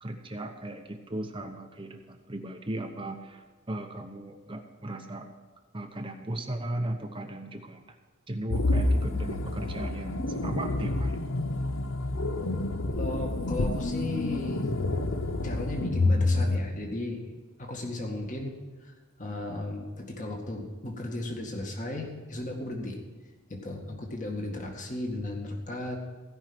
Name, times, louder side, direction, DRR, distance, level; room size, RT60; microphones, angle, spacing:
voice 1, 0.0-5.3 5.7-7.8 8.3-11.2, right 1 dB, 25° right, 4 dB, 0.9 m, -36 dB
sound 1, 8.5-16.6, left 2 dB, 65° left, 0.8 m, -28 dB
voice 2, 13.0-14.6 15.4-17.2 17.6-18.5 18.8-23.0 23.5-26.0, left 1 dB, 35° left, 1 dB, 2.0 m, -35 dB
16.5 x 5.7 x 9.0 m, 1.3 s
head